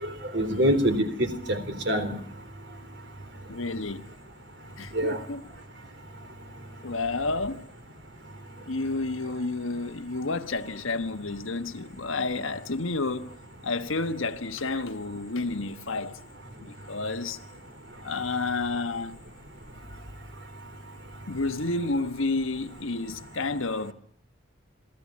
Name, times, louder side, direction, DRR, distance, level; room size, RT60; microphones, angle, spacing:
voice 1, 0.0-1.6 1.9-2.2 4.9-5.2, equal, 60° right, 3.7 m, -25 dB
voice 2, 3.5-4.1 4.8-5.5 6.8-7.7 8.7-13.4 13.6-16.2 16.6-17.4 18.0-19.2 21.3-23.9, left 3 dB, 85° left, 1.4 m, -30 dB
27.0 x 17.0 x 8.6 m
head